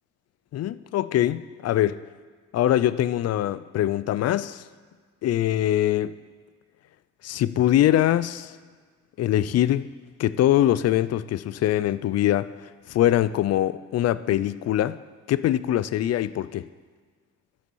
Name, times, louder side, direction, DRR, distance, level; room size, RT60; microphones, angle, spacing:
voice 1, 0.5-2.0 2.5-4.6 5.2-6.2 7.2-8.5 9.2-9.9 10.2-15.0 15.3-16.7, left 12 dB, 55° left, 16 dB, 0.4 m, -23 dB
12.5 x 6.6 x 4.7 m, 1.5 s
cardioid pair, 90°, 30 cm